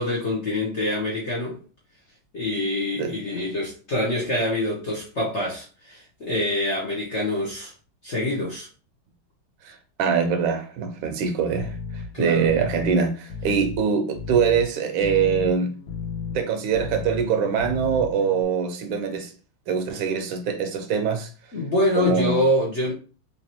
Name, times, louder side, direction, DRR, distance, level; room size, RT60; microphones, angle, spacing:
voice 1, 0.0-1.6 2.3-7.7 8.0-8.7 12.1-12.5 21.5-22.9, left 1 dB, 55° left, 0.8 m, -25 dB
voice 2, 3.0-3.4 9.6-15.7 16.3-19.3 19.7-21.3 22.0-22.4, right 6 dB, 75° right, 1.3 m, -23 dB
sound 1, 11.6-18.4, left 5 dB, 80° left, 1.4 m, -35 dB
4.0 x 2.9 x 2.9 m
omnidirectional pair, 2.2 m